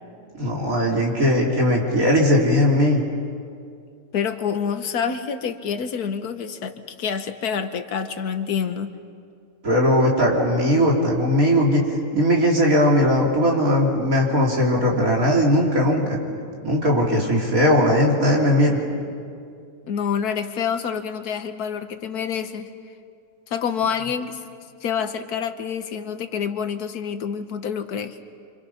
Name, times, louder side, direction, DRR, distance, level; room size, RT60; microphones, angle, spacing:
voice 1, 0.4-3.0 9.6-11.9 12.1-16.2 16.6-18.8, equal, 60° right, -2 dB, 3.6 m, -19 dB
voice 2, 4.1-8.9 19.9-22.7 23.5-24.4 24.8-28.2, left 7 dB, 80° left, 9 dB, 1.6 m, -27 dB
27.0 x 26.0 x 5.7 m, 2.3 s
omnidirectional pair, 1.6 m